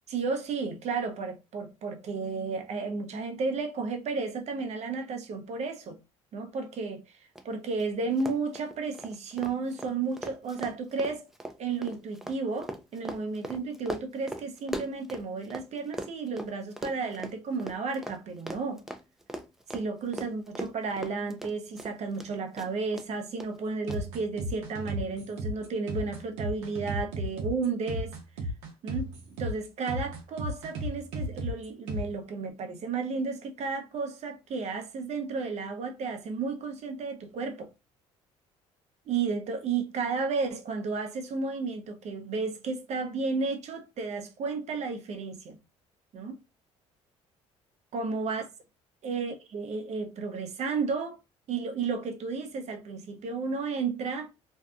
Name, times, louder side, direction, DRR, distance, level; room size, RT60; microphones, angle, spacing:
voice 1, 0.1-6.0 6.3-7.0 7.4-11.3 11.6-18.8 19.7-28.2 28.8-29.1 29.4-37.7 39.1-45.6 46.1-46.4 47.9-48.5 49.0-51.2 51.5-54.3, right 4 dB, 55° right, 0.6 m, -33 dB
Run, 7.3-7.4 7.7-7.8 8.1-15.6 15.9-22.3 22.6-23.1 23.4-23.5 23.9-24.0, right 1 dB, 5° right, 0.4 m, -39 dB
sound 1, 23.9-32.1, equal, 90° right, 0.7 m, -35 dB
2.6 x 2.2 x 2.3 m
supercardioid pair, 70°, 14 cm